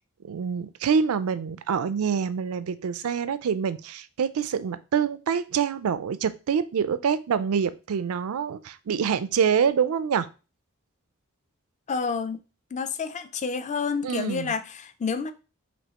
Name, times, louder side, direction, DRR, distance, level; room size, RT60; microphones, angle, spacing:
voice 1, 0.2-10.3 14.0-14.5, right 7 dB, 85° right, 0.4 m, -26 dB
voice 2, 11.9-12.4 12.7-15.3, left 5 dB, 35° left, 0.4 m, -29 dB
5.2 x 3.1 x 2.9 m
head